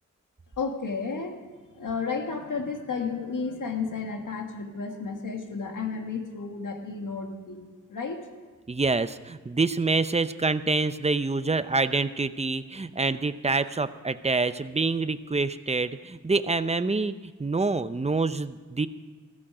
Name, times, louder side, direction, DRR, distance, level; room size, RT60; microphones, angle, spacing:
voice 1, 0.6-1.4 1.7-8.2, left 4 dB, 90° left, 4 dB, 1.8 m, -32 dB
voice 2, 8.7-17.1 17.4-18.9, right 3 dB, 20° right, 12 dB, 0.6 m, -26 dB
15.0 x 14.5 x 4.9 m, 1.4 s
wide cardioid pair, 85°, 30 cm